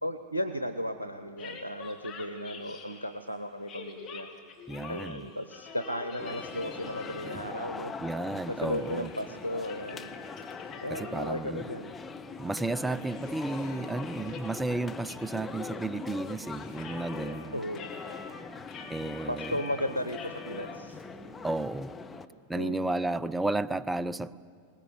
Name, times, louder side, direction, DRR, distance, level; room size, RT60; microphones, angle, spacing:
voice 1, 0.0-4.3 4.9-7.9 8.3-10.1 10.8-11.9 17.5-18.0 19.3-21.0 22.5-22.9, equal, 85° right, 10 dB, 0.8 m, -35 dB
sound 1, 1.4-3.2 3.7-7.7 8.0-11.5 11.8-11.9 12.3-14.6 15.0-15.2 15.4-17.4 17.7-20.7, left 6 dB, 30° left, 3.4 m, -46 dB
voice 2, 4.7-5.3 8.0-9.1 10.9-11.7 12.4-17.6 18.9-19.5 21.4-21.9 22.5-24.4, right 2 dB, 10° right, 19 dB, 0.5 m, -33 dB
sound 2, 6.2-22.3, left 4 dB, 15° left, 1.0 m, -42 dB
21.5 x 19.0 x 9.2 m, 2.5 s
figure-of-eight pair, 90°, 0 cm